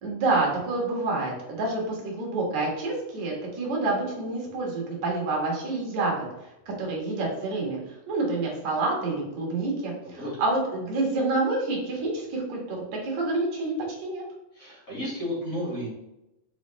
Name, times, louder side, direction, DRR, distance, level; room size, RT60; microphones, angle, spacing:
voice 1, 0.0-6.1 6.8-7.8 8.1-14.2, right 2 dB, 60° right, -2 dB, 2.9 m, -28 dB
voice 2, 10.0-10.4 14.5-15.9, equal, 30° left, -6 dB, 2.0 m, -33 dB
6.8 x 4.5 x 3.1 m, 0.90 s
omnidirectional pair, 3.9 m